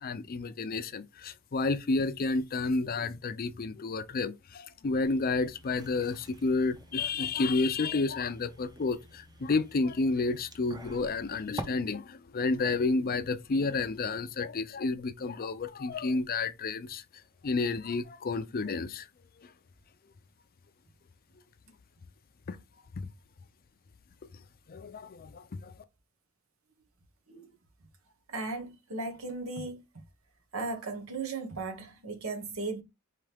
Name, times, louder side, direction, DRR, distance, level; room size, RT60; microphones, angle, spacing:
voice 1, 0.0-17.0 17.4-19.1 19.4-19.5 22.5-22.6 23.0-23.1 24.7-25.7, left 3 dB, 45° left, 0.5 m, -30 dB
sound 1, 5.0-11.6, right 1 dB, 20° right, 0.6 m, -48 dB
voice 2, 28.3-29.8 30.5-32.8, right 3 dB, 85° right, 1.3 m, -36 dB
4.8 x 3.2 x 3.4 m
head